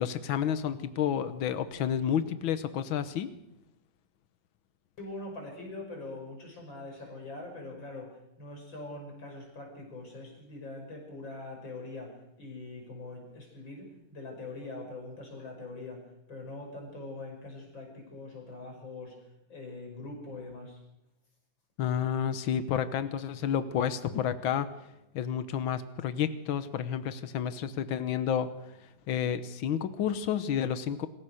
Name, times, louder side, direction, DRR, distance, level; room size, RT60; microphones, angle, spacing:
voice 1, 0.0-3.3 21.8-24.7 25.1-28.5 29.1-31.1, left 9 dB, 85° left, 12 dB, 1.8 m, -30 dB
voice 2, 5.0-20.8, left 2 dB, 70° left, 1 dB, 6.7 m, -43 dB
26.5 x 15.5 x 6.5 m, 0.86 s
omnidirectional pair, 2.1 m